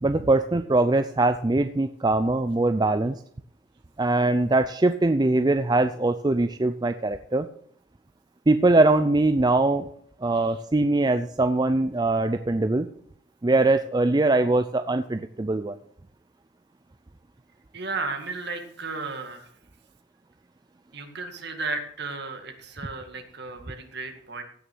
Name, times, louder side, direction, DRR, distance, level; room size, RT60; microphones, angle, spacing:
voice 1, 0.0-3.2 4.0-7.5 8.5-9.9 10.2-12.9 13.4-15.8, right 2 dB, 20° right, 9 dB, 0.4 m, -22 dB
voice 2, 17.7-19.5 20.9-24.4, right 3 dB, 60° right, 5 dB, 2.0 m, -34 dB
16.0 x 6.4 x 6.2 m, 0.63 s
head